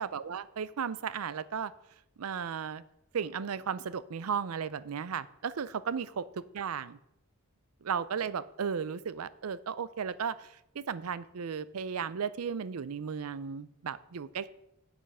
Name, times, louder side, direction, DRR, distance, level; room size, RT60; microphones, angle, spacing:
voice 1, 0.0-1.7 2.2-2.8 3.1-7.0 7.8-14.5, right 6 dB, 80° right, 17 dB, 0.5 m, -35 dB
8.0 x 8.0 x 5.5 m, 0.82 s
head